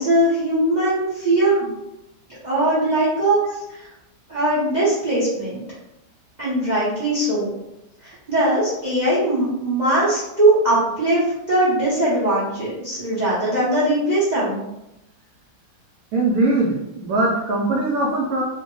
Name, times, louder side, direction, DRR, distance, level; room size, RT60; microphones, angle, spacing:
voice 1, 0.0-1.7 2.4-3.9 4.3-5.6 6.4-7.5 8.0-14.6, right 1 dB, 45° right, -9 dB, 0.5 m, -20 dB
voice 2, 16.1-18.4, right 2 dB, 90° right, -3 dB, 0.7 m, -21 dB
3.1 x 2.1 x 3.0 m, 0.90 s
omnidirectional pair, 2.1 m